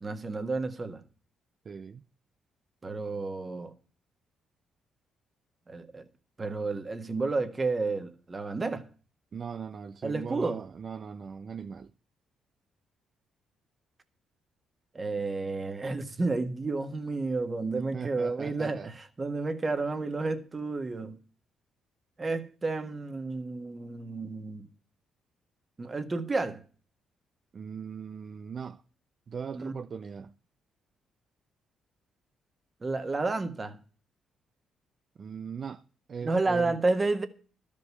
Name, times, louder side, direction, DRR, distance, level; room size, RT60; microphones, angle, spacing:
voice 1, 0.0-1.0 2.8-3.7 5.7-6.1 6.4-8.9 10.0-10.6 14.9-21.2 22.2-24.7 25.8-26.6 29.5-29.7 32.8-33.8 36.2-37.3, right 3 dB, 30° right, 1.5 m, -31 dB
voice 2, 1.6-2.0 9.3-11.9 17.9-18.9 27.5-28.8 29.3-30.4 35.2-35.8 36.1-36.8, right 6 dB, 45° right, 0.5 m, -39 dB
13.0 x 5.3 x 8.2 m
cardioid pair, 90°, 0 cm